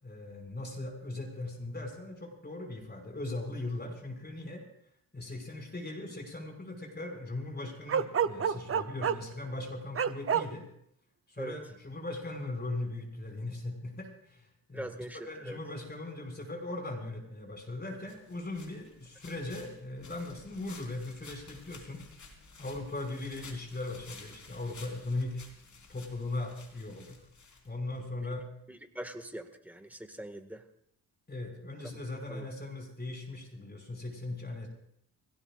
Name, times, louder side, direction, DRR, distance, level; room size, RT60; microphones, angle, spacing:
voice 1, 0.0-4.6 5.1-10.6 11.3-14.9 15.3-22.0 22.6-25.4 25.9-27.2 27.6-28.5 31.3-34.7, left 2 dB, 25° left, 2 dB, 5.5 m, -39 dB
Bark, 7.9-9.3 9.9-10.5, right 7 dB, 35° right, 0.7 m, -28 dB
voice 2, 14.7-15.6 28.7-30.7 32.3-32.5, right 1 dB, 5° right, 6 dB, 1.8 m, -42 dB
sound 1, 18.1-28.1, left 4 dB, 50° left, 4.0 m, -53 dB
24.5 x 17.0 x 2.5 m, 0.70 s
cardioid pair, 75°, 38 cm